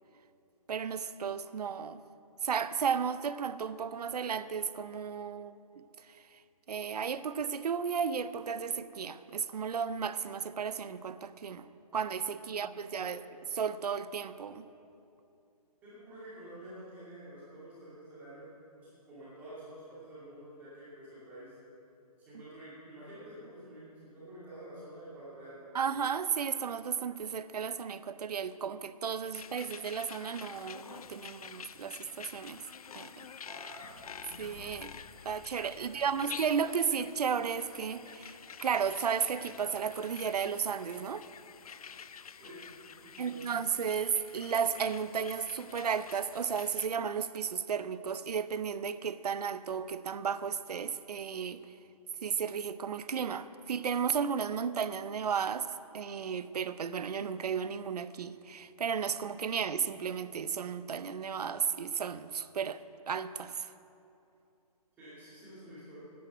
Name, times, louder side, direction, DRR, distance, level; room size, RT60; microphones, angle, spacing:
voice 1, 0.7-2.0 2.4-6.2 6.7-11.7 11.9-13.2 13.5-14.7 25.7-32.6 32.9-33.3 34.4-34.9 35.2-41.2 43.2-51.6 52.2-62.8 63.1-63.7, right 7 dB, 90° right, 0.6 m, -34 dB
voice 2, 15.8-18.5 18.8-21.6 22.2-25.7 33.4-34.1 35.7-36.3 42.4-42.6 43.0-43.5 65.0-66.0, right 1 dB, 10° right, 2.4 m, -49 dB
sound 1, 29.3-46.9, left 7 dB, 70° left, 0.5 m, -49 dB
sound 2, 33.8-37.7, left 4 dB, 50° left, 1.1 m, -56 dB
9.5 x 9.1 x 7.9 m
hypercardioid pair, 175°, 20 cm